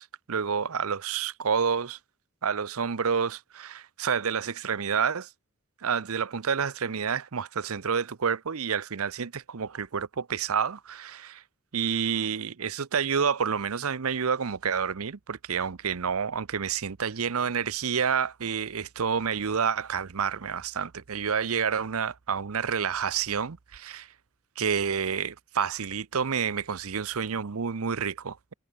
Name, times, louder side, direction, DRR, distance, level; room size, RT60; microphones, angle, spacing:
voice 1, 0.0-2.0 2.4-5.3 5.8-11.4 11.7-24.1 24.6-28.5, right 6 dB, 75° right, 0.7 m, -29 dB
head